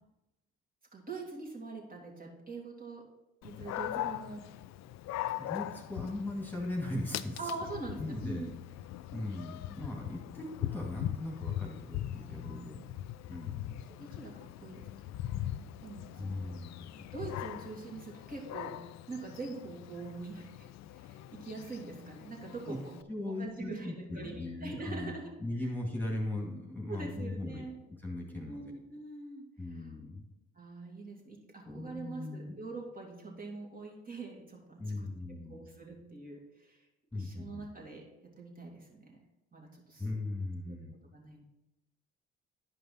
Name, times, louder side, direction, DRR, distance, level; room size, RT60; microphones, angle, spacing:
voice 1, 0.9-3.1 3.4-4.5 7.4-8.5 12.0-13.0 13.9-14.9 15.1-16.3 17.1-18.8 19.1-22.9 23.2-25.3 26.9-27.8 28.3-29.9 30.5-36.9 37.1-39.2 39.5-40.1 40.6-40.8 41.1-41.4, right 3 dB, 30° right, -1 dB, 2.7 m, -44 dB
Dog, 3.4-23.0, left 12 dB, 60° left, 0.5 m, -41 dB
voice 2, 5.4-7.4 7.9-8.5 9.1-12.8 13.3-13.8 16.2-17.0 22.7-22.8 23.1-25.1 25.4-27.6 28.0-28.6 29.6-30.2 31.6-32.6 34.8-35.6 37.1-37.7 40.0-40.9, left 2 dB, 5° left, -2 dB, 2.1 m, -38 dB
11.0 x 5.4 x 4.3 m, 0.95 s
supercardioid pair, 70°, 31 cm